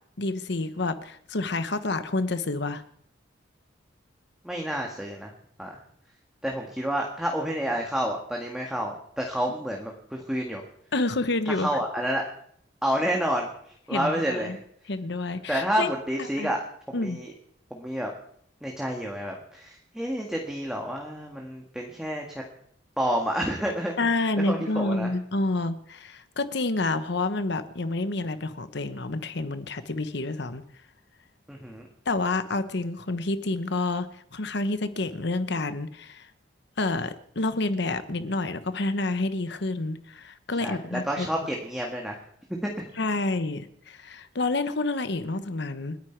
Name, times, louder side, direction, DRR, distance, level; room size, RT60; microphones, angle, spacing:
voice 1, 0.2-2.8 10.9-11.7 13.9-14.6 14.9-15.9 16.4-16.5 16.9-17.2 24.0-30.6 32.1-36.3 36.8-41.3 43.0-46.0, left 2 dB, 65° left, 11 dB, 1.1 m, -29 dB
voice 2, 4.4-5.3 5.6-5.7 6.4-10.6 11.5-12.2 12.8-13.5 13.9-14.6 15.5-16.6 16.9-17.3 17.7-18.1 18.6-22.4 23.0-24.0 24.4-25.1 31.5-31.9 40.6-42.2 42.5-42.7, equal, 5° right, 0 dB, 1.8 m, -29 dB
29.5 x 10.0 x 4.6 m, 0.67 s
head